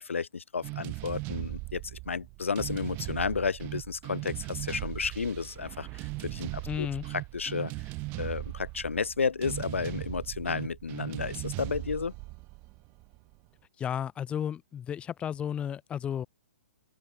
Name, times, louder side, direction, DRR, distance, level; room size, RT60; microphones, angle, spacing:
voice 1, 0.0-7.7 8.2-12.1, left 5 dB, 70° left, 2.6 m, -32 dB
sound 1, 0.6-13.4, right 25 dB, 30° right, 2.3 m, -38 dB
voice 2, 6.7-7.0 13.8-16.3, left 9 dB, 15° left, 1.5 m, -33 dB
open air
figure-of-eight pair, 120°, 7 cm